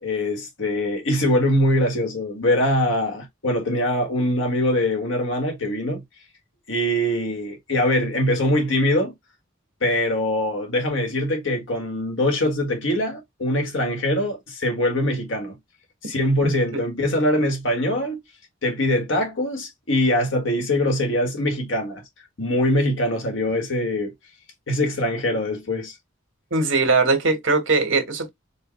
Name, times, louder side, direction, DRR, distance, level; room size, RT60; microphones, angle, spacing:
voice 1, 0.0-6.0 6.7-9.1 9.8-15.6 16.0-18.2 18.6-22.0 22.4-24.1 24.7-25.9, left 1 dB, 70° left, 1.4 m, -23 dB
voice 2, 16.4-16.8 26.5-28.3, right 3 dB, 70° right, 1.4 m, -21 dB
4.5 x 2.3 x 3.1 m
head